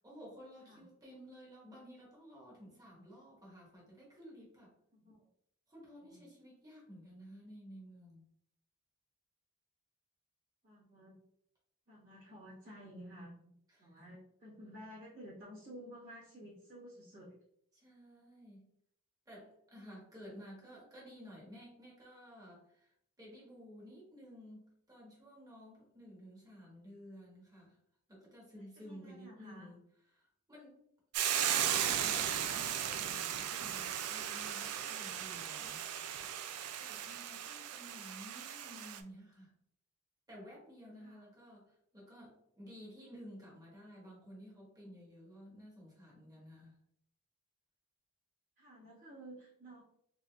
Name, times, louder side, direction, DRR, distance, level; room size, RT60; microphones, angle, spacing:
voice 1, 0.0-4.7 5.7-8.3 13.7-14.1 17.7-18.7 19.3-27.8 28.1-30.8 31.2-35.9 36.8-39.5 40.3-46.8, equal, 15° right, -5 dB, 1.3 m, -54 dB
voice 2, 4.9-5.3 6.0-6.2 10.6-11.1 11.9-13.5 13.8-17.4 28.8-29.7 41.0-41.2 48.6-49.8, equal, 45° right, -11 dB, 1.4 m, -52 dB
Hiss / Boiling, 31.1-39.0, right 10 dB, 80° right, 0.4 m, -36 dB
3.6 x 3.4 x 2.3 m, 0.74 s
head